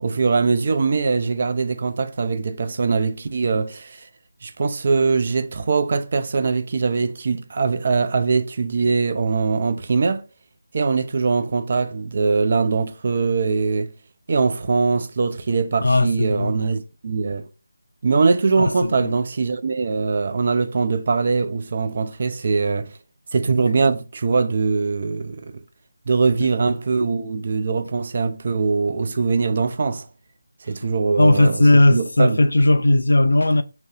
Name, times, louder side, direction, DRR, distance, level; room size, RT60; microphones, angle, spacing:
voice 1, 0.0-4.1 4.4-10.2 10.7-13.9 14.3-17.5 18.0-22.9 23.3-25.6 26.1-30.1 30.6-32.4, right 4 dB, 40° right, 0.4 m, -22 dB
voice 2, 15.8-16.6 18.6-19.1 31.2-33.6, left 1 dB, 65° left, 0.4 m, -17 dB
2.8 x 2.1 x 3.2 m
figure-of-eight pair, 160°, 0 cm